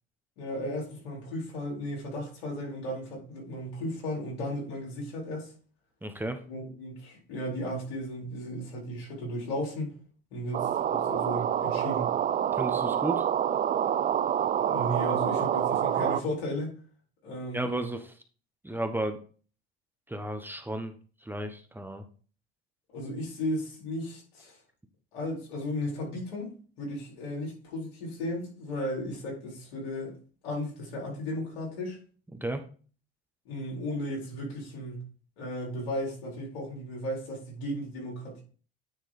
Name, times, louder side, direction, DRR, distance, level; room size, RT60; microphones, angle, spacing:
voice 1, 0.4-5.5 6.5-9.9 10.3-12.1 14.7-16.7 17.2-17.8 22.9-24.6 25.1-30.2 30.4-32.0 33.5-35.0 35.4-38.4, equal, 85° left, 4.3 m, -35 dB
voice 2, 6.0-6.4 12.5-13.2 17.5-18.2 18.6-19.2 20.1-22.0 32.3-32.6, right 1 dB, 5° right, 1.0 m, -33 dB
sound 1, 10.5-16.2, right 9 dB, 25° right, 0.5 m, -27 dB
9.5 x 3.7 x 4.9 m
supercardioid pair, 95°, 31 cm